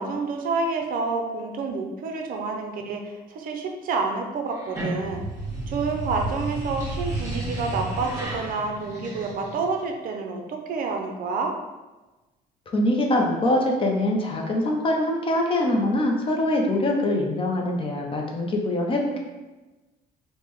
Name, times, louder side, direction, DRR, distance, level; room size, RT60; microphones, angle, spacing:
voice 1, 0.0-5.2 5.7-11.5, right 4 dB, 60° right, 3 dB, 0.5 m, -28 dB
sound 1, 4.5-9.8, right 2 dB, 20° right, 1.3 m, -32 dB
voice 2, 12.7-19.2, left 1 dB, 30° left, 1 dB, 0.5 m, -23 dB
3.4 x 2.1 x 3.0 m, 1.1 s
cardioid pair, 110°, 17 cm